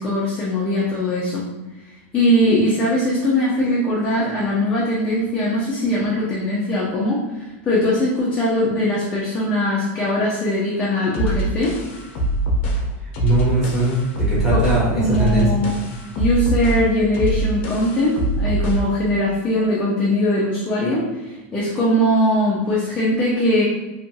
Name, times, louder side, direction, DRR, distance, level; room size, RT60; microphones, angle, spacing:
voice 1, 0.0-1.5 2.1-11.7 14.5-14.6 15.0-15.7 16.2-23.6, left 1 dB, 15° left, -7 dB, 0.4 m, -20 dB
sound 1, 11.1-19.0, right 1 dB, 60° left, 0.6 m, -23 dB
voice 2, 13.2-15.5, right 2 dB, 5° right, -11 dB, 1.1 m, -20 dB
2.7 x 2.4 x 2.6 m, 1.1 s
supercardioid pair, 165°, 7 cm